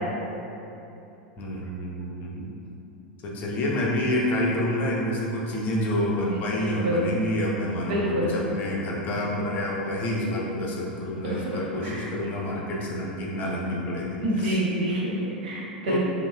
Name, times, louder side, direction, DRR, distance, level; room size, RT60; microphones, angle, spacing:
voice 1, 1.4-2.5 3.2-14.6 15.9-16.0, left 1 dB, 35° left, -3 dB, 0.6 m, -28 dB
voice 2, 6.6-7.1 7.8-8.3 11.2-12.1 14.2-16.0, equal, 60° right, -5 dB, 0.7 m, -27 dB
5.2 x 2.1 x 2.2 m, 2.9 s
figure-of-eight pair, 90°, 5 cm